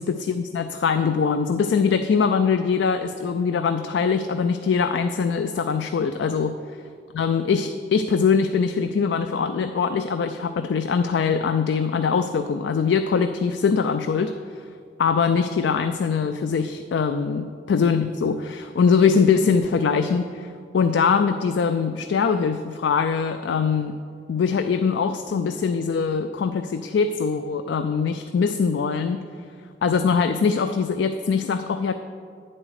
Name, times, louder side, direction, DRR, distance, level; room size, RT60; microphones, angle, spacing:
voice 1, 0.0-6.6 7.1-14.6 15.0-24.0 24.3-29.2 29.8-31.9, left 5 dB, 80° left, 8 dB, 0.3 m, -22 dB
9.0 x 7.6 x 4.8 m, 2.3 s
head